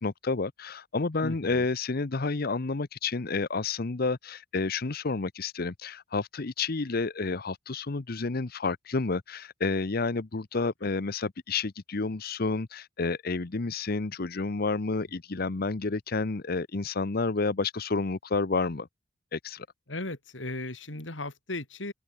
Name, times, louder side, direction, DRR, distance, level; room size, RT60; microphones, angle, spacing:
voice 1, 0.0-18.9 19.3-19.7, left 3 dB, 55° left, 0.8 m, -30 dB
voice 2, 1.2-1.7 10.8-11.0 19.9-21.9, left 2 dB, 75° left, 4.1 m, -37 dB
head